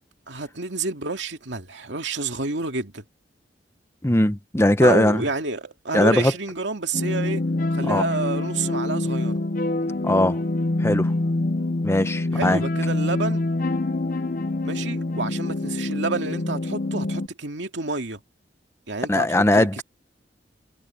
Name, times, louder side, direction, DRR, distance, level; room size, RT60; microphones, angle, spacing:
voice 1, 0.3-3.0 4.8-7.4 7.7-9.3 12.3-13.5 14.6-18.2 18.9-19.8, right 3 dB, 90° right, 2.4 m, -29 dB
voice 2, 4.0-5.2 5.9-6.3 7.8-8.0 10.0-10.4 10.8-11.1 11.8-12.6 19.1-19.8, left 1 dB, 15° left, 0.9 m, -19 dB
sound 1, 6.9-17.3, left 2 dB, 50° left, 0.7 m, -25 dB
head